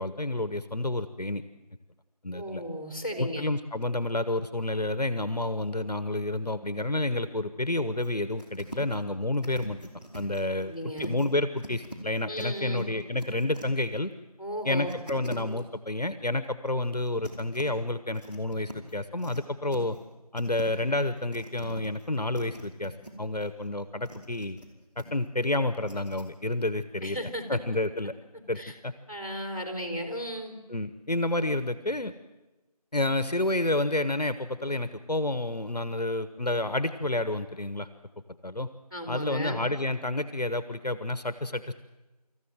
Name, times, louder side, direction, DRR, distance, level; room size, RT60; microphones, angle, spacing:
voice 1, 0.0-1.4 2.2-2.6 3.2-9.8 10.1-10.7 11.0-14.1 14.6-20.0 20.3-22.9 23.2-24.6 25.0-27.2 27.5-28.1 28.5-28.9 30.7-32.1 32.9-37.9 38.4-38.7 39.1-41.7, left 2 dB, 80° left, 12 dB, 1.2 m, -29 dB
voice 2, 2.3-3.5 10.6-11.1 12.3-12.9 14.4-14.9 27.0-27.6 28.5-28.7 29.1-30.6 38.9-39.7, equal, 30° left, 4 dB, 3.2 m, -35 dB
sound 1, 8.0-8.1 8.4-9.0 9.3-11.3 11.6-13.9 14.8-15.6 16.8-17.6 18.1-19.4 19.7-20.1 20.4-23.1 23.4-24.7 25.0-25.2 25.8-26.2, right 1 dB, 15° right, 2.5 m, -45 dB
26.0 x 14.5 x 7.8 m, 1.1 s
figure-of-eight pair, 175°, 20 cm